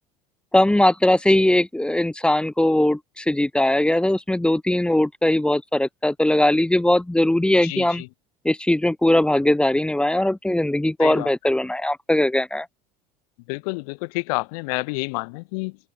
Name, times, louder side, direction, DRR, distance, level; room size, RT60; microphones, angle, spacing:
voice 1, 0.5-8.0 8.4-12.7, left 1 dB, 5° left, 0.5 m, -20 dB
voice 2, 7.6-8.1 11.0-11.3 13.5-15.8, left 29 dB, 65° left, 1.0 m, -29 dB
open air
hypercardioid pair, 70°, 21 cm